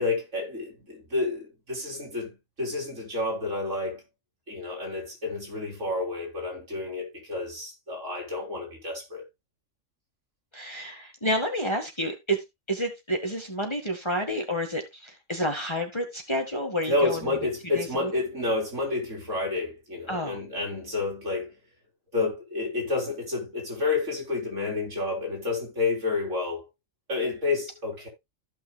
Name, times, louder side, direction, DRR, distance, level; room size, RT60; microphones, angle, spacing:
voice 1, 0.0-4.0 4.5-9.2 16.9-21.5 22.1-26.6 27.1-28.1, left 3 dB, 65° right, 4.0 m, -30 dB
voice 2, 10.5-17.2 17.7-18.1 20.1-20.4, equal, 20° left, 1.7 m, -30 dB
15.0 x 5.8 x 2.3 m
omnidirectional pair, 1.4 m